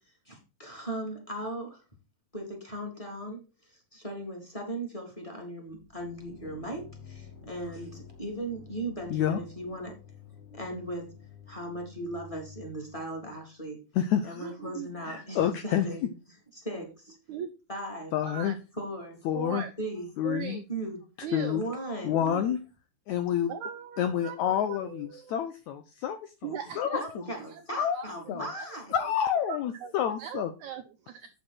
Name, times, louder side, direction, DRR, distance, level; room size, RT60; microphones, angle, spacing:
voice 1, 0.2-1.8 2.3-9.9 10.5-11.1 11.5-13.8 14.2-16.1 16.5-17.2 17.7-18.1 18.7-19.2 19.8-20.1 20.7-21.0 21.5-22.2 26.9-28.9, right 1 dB, 10° left, 2 dB, 3.0 m, -38 dB
sound 1, 5.7-13.5, left 6 dB, 45° left, 3.1 m, -51 dB
voice 2, 9.1-9.4 13.9-14.4 15.0-15.8 18.1-18.5 19.2-19.6 20.2-20.6 21.3-21.6 22.0-22.6 23.1-23.5 24.0-26.2 26.8-27.2 27.7-28.0 28.3-28.5 28.9-30.5, left 9 dB, 90° left, 9 dB, 1.6 m, -28 dB
voice 3, 14.4-14.9 17.3-17.5 18.2-18.6 19.3-19.7 20.2-20.6 21.2-21.6 22.1-22.6 23.5-25.4 26.4-27.0 27.3-27.6 27.9-29.1 29.4-29.9 30.2-31.3, right 9 dB, 85° right, 8 dB, 1.7 m, -40 dB
8.7 x 7.5 x 4.4 m, 0.31 s
omnidirectional pair, 4.3 m